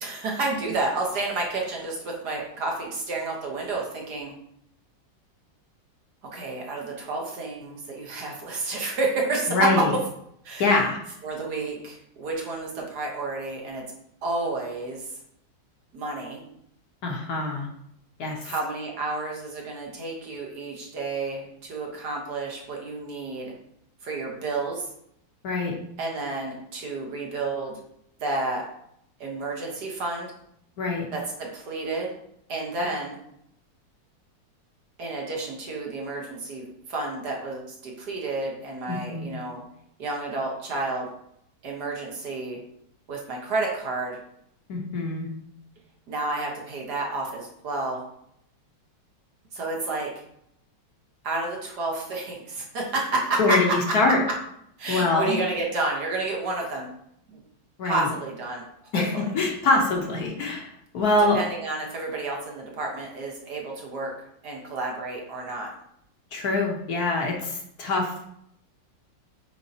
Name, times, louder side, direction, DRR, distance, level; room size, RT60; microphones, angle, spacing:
voice 1, 0.0-4.3 6.3-9.9 10.4-10.7 11.2-13.8 14.2-15.1 15.9-16.4 18.4-23.5 24.0-24.9 26.0-27.8 28.2-28.6 29.2-30.3 31.1-32.1 32.5-33.2 35.0-39.6 40.0-41.1 41.6-42.6 43.1-44.2 46.1-48.0 49.5-50.1 51.2-53.8 54.8-56.9 57.3-57.4 57.8-58.6 58.9-59.3 61.3-64.1 64.4-65.7, right 3 dB, 65° right, -1 dB, 1.7 m, -30 dB
voice 2, 9.5-9.9 10.6-11.0 17.0-17.7 18.2-18.4 25.4-25.8 30.8-31.1 38.9-39.3 44.7-45.3 53.4-54.2 54.9-55.4 57.8-58.1 58.9-61.4 66.3-68.3, left 3 dB, 60° left, 0 dB, 1.4 m, -24 dB
8.7 x 3.8 x 2.8 m, 0.73 s
omnidirectional pair, 2.0 m